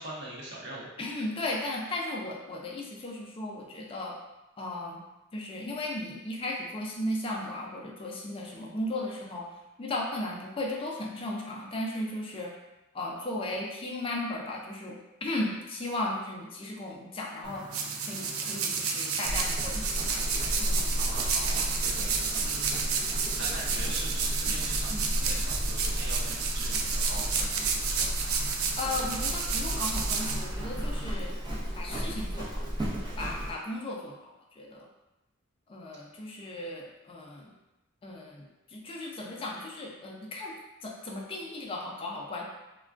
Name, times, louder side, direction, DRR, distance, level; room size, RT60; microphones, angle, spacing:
voice 1, 0.0-0.9 21.0-28.1 28.9-29.3, right 1 dB, 60° right, -4 dB, 0.7 m, -43 dB
voice 2, 1.0-4.2 4.6-5.0 5.3-9.5 9.8-12.5 12.9-17.7 18.0-21.2 28.8-31.3 31.8-32.7 33.2-34.9 35.7-37.5 38.0-40.5 40.8-42.4, left 1 dB, 25° left, -1 dB, 0.3 m, -36 dB
sound 1, 17.4-31.0, right 5 dB, 90° right, 0.4 m, -31 dB
Livestock farm animals working animals, 19.2-33.5, equal, 20° right, 0.6 m, -33 dB
3.4 x 2.2 x 2.4 m, 0.99 s
head